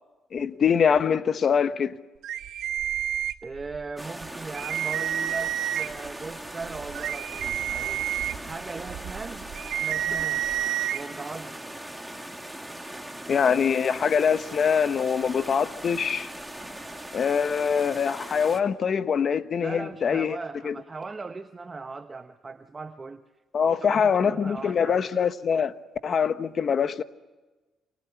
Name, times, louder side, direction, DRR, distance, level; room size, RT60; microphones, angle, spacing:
voice 1, 0.3-2.0 13.3-16.3 17.1-20.4 20.6-20.7 23.5-25.7 26.0-27.0, left 7 dB, 50° left, 1.2 m, -24 dB
sound 1, 2.2-3.8 4.2-4.3 4.5-6.1 6.6-11.0, right 11 dB, 85° right, 1.3 m, -30 dB
voice 2, 3.4-8.0 8.4-9.5 9.8-10.4 10.9-11.8 19.6-23.2 23.7-25.1, right 4 dB, 30° right, 1.2 m, -38 dB
sound 2, 4.0-18.6, right 1 dB, 5° right, 2.5 m, -40 dB
29.0 x 26.0 x 5.8 m
cardioid pair, 90°, 0 cm